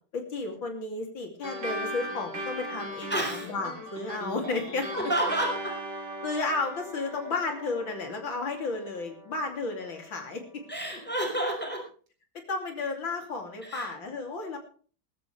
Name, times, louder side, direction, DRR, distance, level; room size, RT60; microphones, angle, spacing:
voice 1, 0.1-4.9 6.2-10.6 12.3-14.6, left 3 dB, 70° left, 3 dB, 3.7 m, -33 dB
sound 1, 1.4-10.3, right 1 dB, 80° right, 4.3 m, -39 dB
voice 2, 3.1-3.5 4.9-5.7 10.7-11.8 13.6-13.9, right 1 dB, 5° left, 0 dB, 5.3 m, -29 dB
20.0 x 13.5 x 3.4 m, 0.41 s
omnidirectional pair, 2.2 m